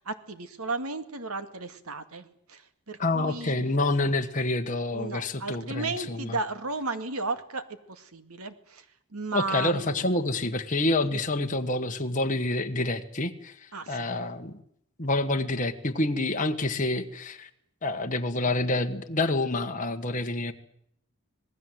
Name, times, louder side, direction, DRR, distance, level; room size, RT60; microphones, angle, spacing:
voice 1, 0.1-3.7 4.9-7.6 7.9-8.8 9.1-10.0 11.1-11.2 13.7-14.1, right 3 dB, 75° right, 10 dB, 2.2 m, -34 dB
voice 2, 3.0-6.4 9.3-14.6 15.0-17.5 17.8-20.5, left 2 dB, 35° left, 4 dB, 1.5 m, -28 dB
26.5 x 19.5 x 7.9 m, 0.69 s
head